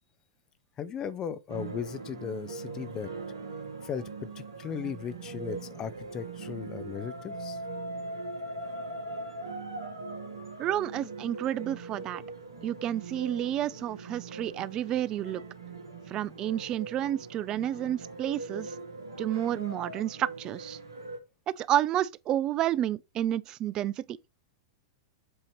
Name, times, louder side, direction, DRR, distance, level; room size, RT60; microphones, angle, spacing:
voice 1, 0.8-3.1 3.8-4.1 4.4-7.6, left 7 dB, 30° left, 0.6 m, -37 dB
sound 1, 1.5-21.2, right 3 dB, 80° right, 1.8 m, -41 dB
voice 2, 10.6-12.2 12.6-15.4 16.1-18.7 19.2-20.8 21.5-24.2, right 11 dB, 35° right, 0.4 m, -30 dB
7.8 x 2.9 x 4.5 m
figure-of-eight pair, 95°, 2 cm